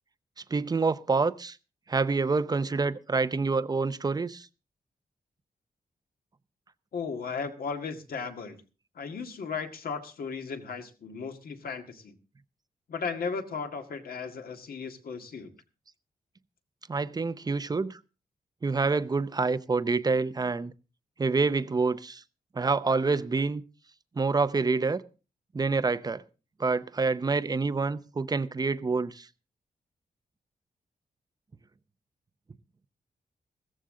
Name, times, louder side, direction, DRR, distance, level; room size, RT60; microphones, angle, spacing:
voice 1, 0.5-1.6 1.9-4.5 16.9-18.0 18.6-20.7 21.2-22.2 22.5-23.6 24.2-25.0 25.5-26.2 26.6-29.3, right 4 dB, 25° right, 0.6 m, -27 dB
voice 2, 6.9-8.6 9.0-12.1 12.9-15.5, left 5 dB, 70° left, 1.9 m, -36 dB
15.5 x 14.0 x 3.8 m
wide cardioid pair, 160°, 16 cm